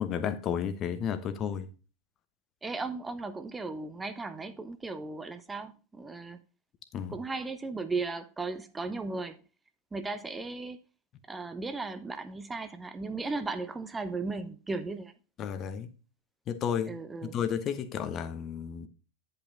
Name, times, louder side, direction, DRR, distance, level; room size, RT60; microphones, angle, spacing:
voice 1, 0.0-1.7 6.9-7.1 15.4-15.9 16.5-16.9 17.2-18.9, left 8 dB, 30° left, 1.0 m, -32 dB
voice 2, 2.6-6.4 7.1-9.4 9.9-10.8 11.3-15.1 16.9-17.5, right 3 dB, 10° right, 0.6 m, -36 dB
10.0 x 5.5 x 3.9 m
figure-of-eight pair, 90°, 0 cm